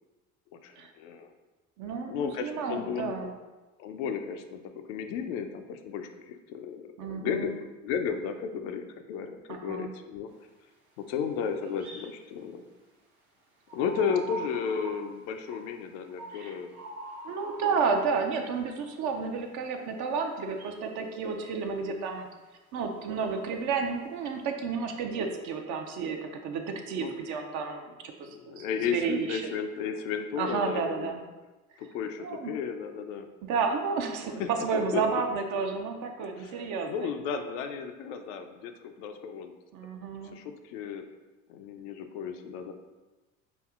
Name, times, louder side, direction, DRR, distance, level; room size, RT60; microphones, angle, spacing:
voice 1, 0.6-1.3 2.1-3.3 3.8-7.5 7.8-10.3 11.0-12.6 13.7-16.7 17.9-18.0 26.9-27.1 28.2-31.2 31.8-33.3 34.4-34.5 34.9-35.0 36.4-39.5 40.3-41.0 41.5-42.7, left 7 dB, 55° left, 6 dB, 0.5 m, -34 dB
voice 2, 1.8-3.3 7.0-7.5 9.5-9.9 16.3-16.5 17.2-22.3 22.7-29.4 30.4-31.2 32.2-32.5 33.5-36.9 39.7-40.4, right 5 dB, 45° right, 4 dB, 0.6 m, -31 dB
sound 1, 11.6-12.2 13.7-15.0 15.5-15.7 16.1-17.8 20.4-20.8 23.0-23.6, right 2 dB, 85° right, 0.9 m, -43 dB
6.2 x 2.7 x 2.4 m, 1.2 s
figure-of-eight pair, 65°, 43 cm